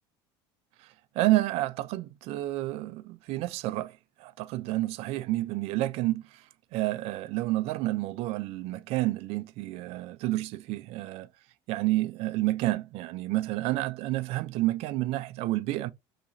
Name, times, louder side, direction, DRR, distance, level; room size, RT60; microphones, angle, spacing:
voice 1, 0.8-6.4 6.7-11.3 11.7-15.9, right 17 dB, 60° right, 0.4 m, -30 dB
2.9 x 2.4 x 4.0 m
supercardioid pair, 110°, 12 cm